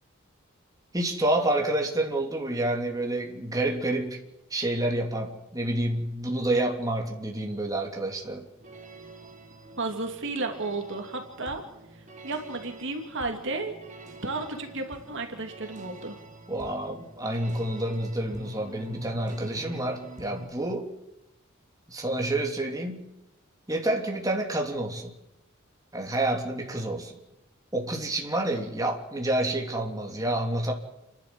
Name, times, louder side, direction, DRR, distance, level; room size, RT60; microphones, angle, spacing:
voice 1, 0.9-4.2 4.5-8.5 16.5-20.9 21.9-23.0 23.7-25.1 25.9-27.1 27.7-30.7, right 1 dB, 15° right, 1 dB, 3.1 m, -28 dB
sound 1, 8.6-20.5, right 1 dB, 35° right, 2.5 m, -46 dB
voice 2, 9.8-11.6 12.2-13.7 14.2-16.2, right 3 dB, 60° right, 4 dB, 2.8 m, -33 dB
30.0 x 12.0 x 7.8 m, 0.90 s
head